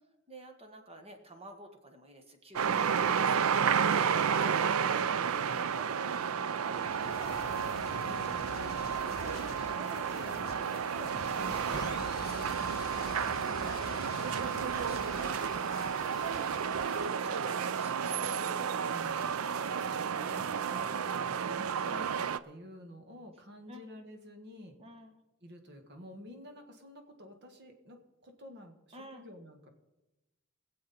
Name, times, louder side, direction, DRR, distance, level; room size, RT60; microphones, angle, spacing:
voice 1, 0.3-8.2 8.6-12.6 12.9-13.2 13.6-19.0 21.0-21.6 23.7-23.8 24.8-25.1 28.9-29.2, right 1 dB, 30° right, 5 dB, 1.6 m, -51 dB
sound 1, 2.5-22.4, right 7 dB, 70° right, 0.5 m, -31 dB
sound 2, 6.7-17.1, left 6 dB, 45° left, 0.3 m, -47 dB
sound 3, 11.7-19.3, left 2 dB, 20° left, 1.1 m, -54 dB
voice 2, 12.4-13.0 18.8-24.8 25.4-29.7, equal, 55° right, 5 dB, 1.7 m, -51 dB
22.5 x 7.7 x 4.3 m, 1.0 s
head